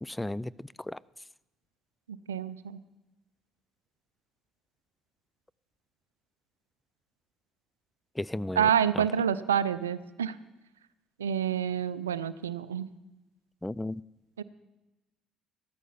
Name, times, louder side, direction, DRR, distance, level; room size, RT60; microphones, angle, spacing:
voice 1, 0.0-1.0 8.2-8.7 9.0-9.1 13.6-14.0, left 1 dB, 10° left, 0.4 m, -34 dB
voice 2, 2.1-2.8 8.6-10.4 11.2-12.9 14.4-14.5, right 8 dB, 85° right, 0.4 m, -28 dB
15.0 x 13.0 x 5.5 m
hypercardioid pair, 55°, 0 cm